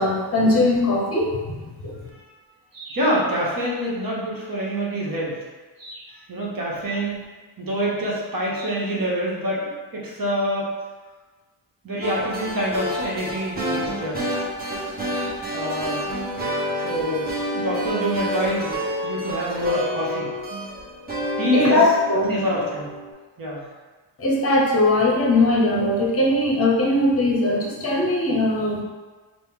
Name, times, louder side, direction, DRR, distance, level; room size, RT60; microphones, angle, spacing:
voice 1, 0.0-1.6 1.8-2.0 21.5-22.3 24.2-28.8, left 2 dB, 30° left, -1 dB, 0.8 m, -20 dB
voice 2, 2.7-5.4 5.8-7.2 7.6-10.7 11.8-14.3 15.1-16.1 16.8-20.3 21.4-21.8 22.3-22.9 23.4-23.7, equal, 45° right, -4 dB, 1.1 m, -26 dB
sound 1, 12.0-23.1, equal, 20° right, 1.1 m, -29 dB
4.2 x 2.1 x 3.7 m, 1.3 s
cardioid pair, 85°, 47 cm